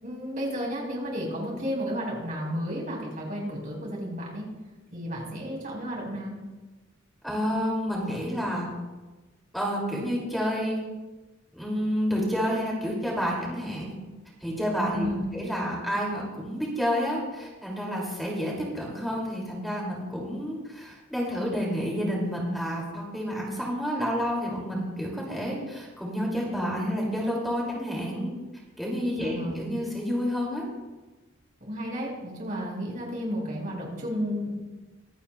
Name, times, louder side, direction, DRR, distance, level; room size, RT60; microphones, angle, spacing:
voice 1, 0.0-4.5 4.9-6.4 14.9-15.4 29.2-29.6 31.6-34.5, equal, 45° right, -2 dB, 4.5 m, -32 dB
voice 2, 7.2-8.8 9.5-10.8 11.5-14.0 14.4-15.1 15.3-28.3 28.8-30.6, equal, ahead, -3 dB, 2.4 m, -29 dB
24.0 x 9.1 x 2.2 m, 1.2 s
head